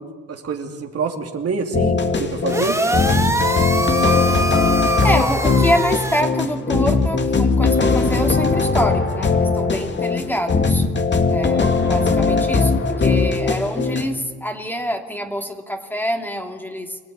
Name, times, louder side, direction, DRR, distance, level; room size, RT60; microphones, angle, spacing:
voice 1, 0.0-2.8, right 5 dB, 50° right, 3 dB, 2.8 m, -26 dB
sound 1, 1.7-14.1, left 4 dB, 35° left, 2.4 m, -19 dB
sound 2, 2.5-6.2, right 1 dB, 10° right, 1.9 m, -23 dB
voice 2, 4.2-4.7 5.0-10.9 11.3-17.0, equal, 5° left, 3 dB, 2.5 m, -26 dB
26.0 x 16.5 x 9.5 m, 1.5 s
cardioid pair, 90°, 30 cm